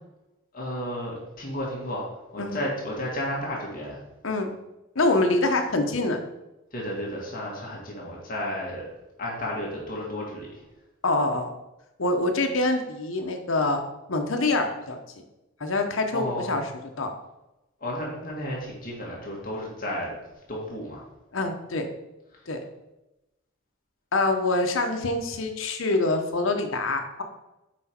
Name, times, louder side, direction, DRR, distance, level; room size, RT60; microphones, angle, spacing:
voice 1, 0.5-2.0 2.3-4.0 6.7-8.8 9.2-10.6 16.1-16.6 17.8-20.1 20.5-21.0, left 1 dB, 45° left, -3 dB, 1.8 m, -32 dB
voice 2, 4.9-6.2 11.0-11.5 12.0-13.8 14.1-15.0 15.6-16.6 17.0-17.1 21.3-21.9 22.5-22.6 24.1-27.2, left 2 dB, 80° left, 4 dB, 1.0 m, -25 dB
6.2 x 5.0 x 4.4 m, 0.97 s
head